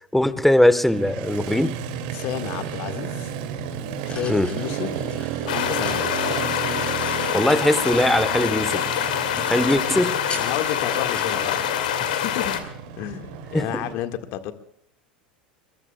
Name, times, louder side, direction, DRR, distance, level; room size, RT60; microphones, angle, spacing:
voice 1, 0.1-1.8 4.3-4.5 7.3-8.9 9.4-10.2 13.5-13.9, left 1 dB, 5° left, 1.2 m, -20 dB
Motorcycle, 0.9-13.9, right 8 dB, 60° right, 2.4 m, -33 dB
voice 2, 2.1-3.3 4.0-5.0 5.5-6.1 10.4-12.5 13.0-14.5, left 12 dB, 55° left, 1.7 m, -31 dB
sound 1, 3.7-8.4 8.7-12.3, left 2 dB, 20° left, 6.5 m, -40 dB
sound 2, 5.5-12.6, left 10 dB, 70° left, 2.2 m, -25 dB
23.0 x 22.5 x 2.3 m
figure-of-eight pair, 80°, 5 cm